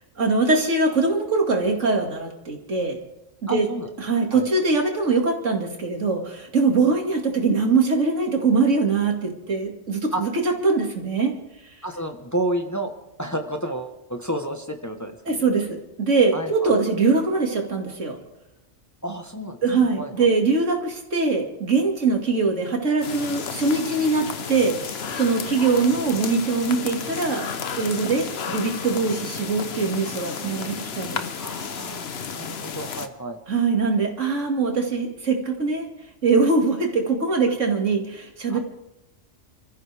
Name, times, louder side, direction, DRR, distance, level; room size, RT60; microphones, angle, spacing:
voice 1, 0.2-3.0 3.4-3.7 4.0-11.3 15.3-18.2 19.6-24.8 25.1-27.5 27.8-31.2 33.5-35.9 36.2-38.6, right 4 dB, 85° right, 2 dB, 2.7 m, -22 dB
voice 2, 3.5-3.9 4.3-4.4 10.1-10.2 11.8-12.9 13.2-15.4 16.3-16.7 19.0-20.3 31.4-33.4 38.5-38.6, right 1 dB, 15° left, 4 dB, 1.2 m, -31 dB
sound 1, 23.0-33.1, left 6 dB, 60° left, 1.1 m, -32 dB
28.5 x 14.0 x 3.5 m, 0.89 s
omnidirectional pair, 1.2 m